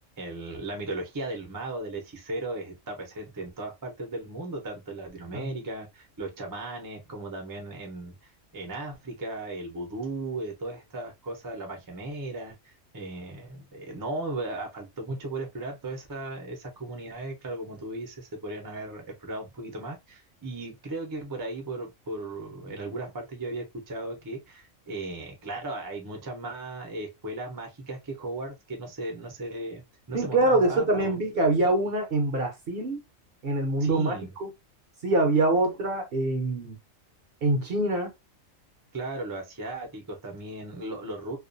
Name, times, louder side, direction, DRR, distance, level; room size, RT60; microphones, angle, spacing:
voice 1, 0.2-31.2 33.8-34.3 38.9-41.4, right 2 dB, 25° right, 0.5 m, -36 dB
voice 2, 30.1-33.0 33.4-34.5 35.0-36.8 37.4-38.1, right 2 dB, 55° right, 0.8 m, -25 dB
2.4 x 2.2 x 2.5 m
omnidirectional pair, 1.4 m